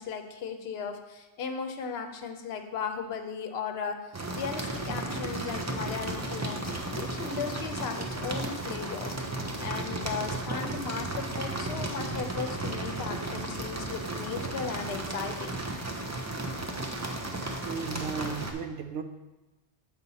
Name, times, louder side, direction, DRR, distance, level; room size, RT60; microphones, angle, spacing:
voice 1, 0.0-4.0 4.4-9.2 9.6-15.6, left 6 dB, 70° left, 6 dB, 0.9 m, -36 dB
sound 1, 4.1-18.5, right 2 dB, 20° right, 0.5 m, -34 dB
voice 2, 17.5-19.0, right 6 dB, 75° right, 8 dB, 0.9 m, -35 dB
6.9 x 5.4 x 4.0 m, 1.1 s
omnidirectional pair, 1.1 m